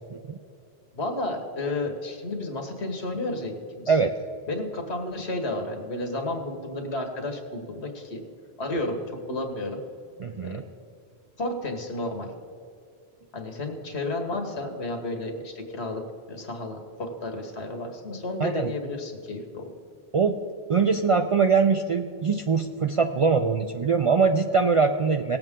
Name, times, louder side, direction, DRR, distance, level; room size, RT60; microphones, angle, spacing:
voice 1, 0.9-3.9 4.5-8.2 8.6-9.8 10.4-10.6 11.4-12.3 13.3-16.0 16.3-19.6, left 2 dB, 85° left, 4 dB, 1.7 m, -32 dB
voice 2, 10.2-10.6 18.4-18.7 20.1-20.4 20.7-25.4, right 5 dB, 55° right, 6 dB, 0.3 m, -22 dB
18.0 x 7.9 x 3.7 m, 2.4 s
omnidirectional pair, 1.1 m